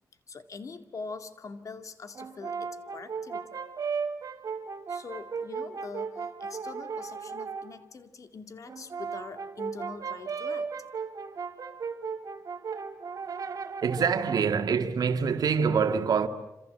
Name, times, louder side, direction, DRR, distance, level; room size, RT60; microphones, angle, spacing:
voice 1, 0.3-3.5 4.9-10.7, left 4 dB, 55° left, 2.2 m, -43 dB
Brass instrument, 2.1-7.7 8.7-14.5, right 5 dB, 65° right, 3.0 m, -36 dB
voice 2, 13.8-16.3, right 6 dB, 80° right, 2.0 m, -25 dB
27.5 x 27.5 x 7.8 m
wide cardioid pair, 115°, 6 cm